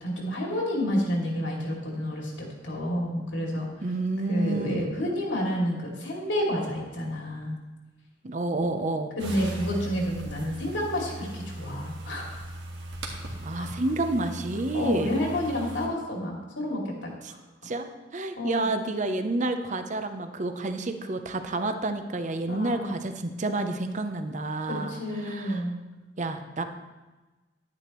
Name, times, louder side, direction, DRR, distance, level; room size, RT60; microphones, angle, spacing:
voice 1, 0.0-3.7 4.3-7.6 9.2-12.5 13.5-13.7 14.7-17.4 18.4-18.6 22.5-22.9 24.6-25.8, equal, 80° left, -2 dB, 2.6 m, -30 dB
voice 2, 3.8-4.9 8.2-9.1 13.4-15.1 17.2-17.3 17.6-25.6 26.2-26.6, right 2 dB, 40° right, 8 dB, 0.7 m, -29 dB
sound 1, 9.2-15.9, right 1 dB, 70° right, 1.6 m, -38 dB
10.5 x 9.8 x 3.1 m, 1.2 s
head